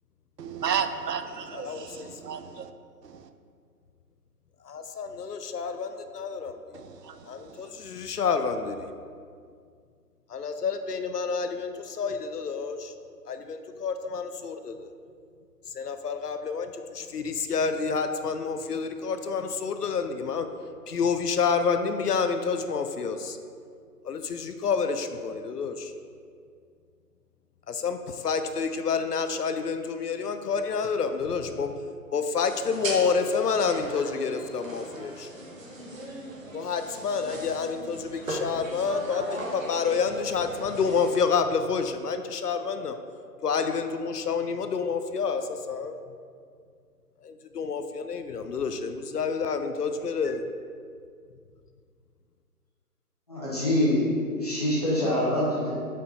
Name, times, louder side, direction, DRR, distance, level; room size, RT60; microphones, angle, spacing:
voice 1, 0.4-2.7 3.0-3.2 6.7-7.2, right 7 dB, 80° right, 10 dB, 0.6 m, -32 dB
voice 2, 1.5-2.2 4.6-6.6 7.3-8.8 10.3-12.9 13.3-14.9 15.7-20.5 20.9-23.4 24.0-25.9 27.7-31.8 32.1-35.3 36.5-43.0 43.4-46.0 47.2-50.4, left 5 dB, 70° left, 8 dB, 0.6 m, -29 dB
sound 1, 32.5-41.2, right 1 dB, 55° right, 1.1 m, -38 dB
voice 3, 53.3-55.7, left 1 dB, 25° left, -8 dB, 1.2 m, -25 dB
5.3 x 5.1 x 4.2 m, 2.2 s
hypercardioid pair, 180°, 48 cm